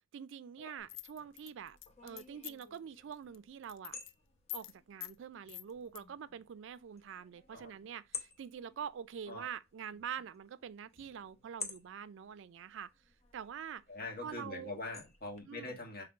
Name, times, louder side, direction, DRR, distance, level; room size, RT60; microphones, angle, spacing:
voice 1, 0.1-3.9 4.5-12.9 13.3-13.8 14.2-14.7 15.5-15.8, right 8 dB, 65° right, 0.3 m, -45 dB
sound 1, 0.8-15.4, left 4 dB, 35° left, 0.8 m, -53 dB
sound 2, 0.9-2.8 3.1-3.4 3.6-4.1 4.5-4.7 5.0-5.2 5.5-6.0, left 17 dB, 70° left, 0.3 m, -45 dB
voice 2, 13.9-16.0, left 2 dB, 50° left, 1.6 m, -43 dB
5.8 x 3.3 x 2.4 m
head